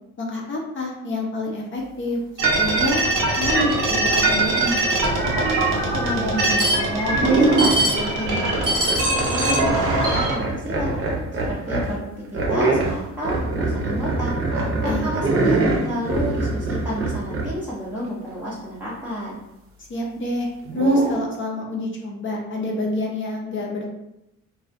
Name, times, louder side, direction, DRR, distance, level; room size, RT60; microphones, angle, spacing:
voice 1, 0.2-2.2 2.5-3.0 3.4-4.8 14.9-15.1 19.9-23.8, left 2 dB, 40° left, -1 dB, 0.6 m, -27 dB
sound 1, 2.4-10.4, right 2 dB, 80° right, 0.7 m, -21 dB
voice 2, 5.6-10.9 11.3-14.3 14.8-19.4, equal, 5° right, -7 dB, 0.6 m, -31 dB
sound 2, 6.6-6.8 7.1-8.0 8.5-11.9 12.3-17.6 20.6-21.2, right 2 dB, 45° right, 0.7 m, -23 dB
2.4 x 2.3 x 2.5 m, 0.87 s
cardioid pair, 90°, 30 cm